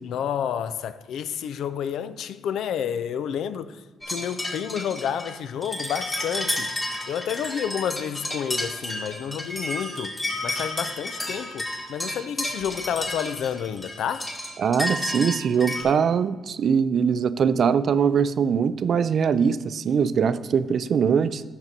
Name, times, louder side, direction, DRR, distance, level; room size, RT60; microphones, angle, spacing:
voice 1, 0.0-6.7 7.1-10.2 10.4-14.3, left 8 dB, 75° left, 0.3 m, -30 dB
sound 1, 4.0-15.8, left 1 dB, 20° left, 1.6 m, -31 dB
voice 2, 14.6-21.4, right 7 dB, 55° right, 0.3 m, -22 dB
10.5 x 6.0 x 2.8 m
cardioid pair, 90°, 0 cm